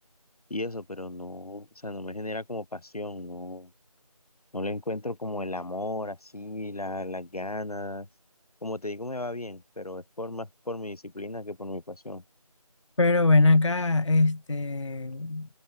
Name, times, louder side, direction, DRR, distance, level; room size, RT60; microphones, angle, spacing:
voice 1, 0.5-3.7 4.5-8.1 8.6-12.2, left 2 dB, 80° left, 1.6 m, -35 dB
voice 2, 13.0-15.5, left 3 dB, 55° left, 0.4 m, -22 dB
figure-of-eight pair, 175°, 19 cm